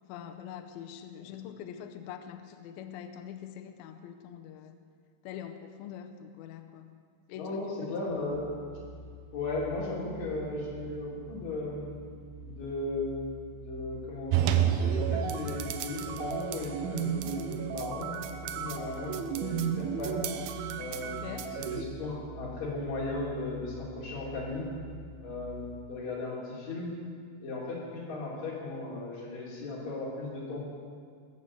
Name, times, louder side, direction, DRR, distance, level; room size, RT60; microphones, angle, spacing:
voice 1, 0.1-4.8 5.2-6.9 7.3-7.9 21.0-21.6, left 9 dB, 80° left, 8 dB, 2.2 m, -44 dB
voice 2, 7.3-8.4 9.3-12.1 12.4-18.1 18.6-20.3 20.7-24.7 25.2-26.9 27.4-30.6, left 2 dB, 45° left, -6 dB, 4.2 m, -36 dB
sound 1, 8.1-25.6, right 1 dB, 30° right, 1.9 m, -48 dB
sound 2, 14.3-21.8, right 9 dB, 85° right, 2.2 m, -31 dB
20.5 x 7.1 x 7.9 m, 2.1 s
omnidirectional pair, 5.1 m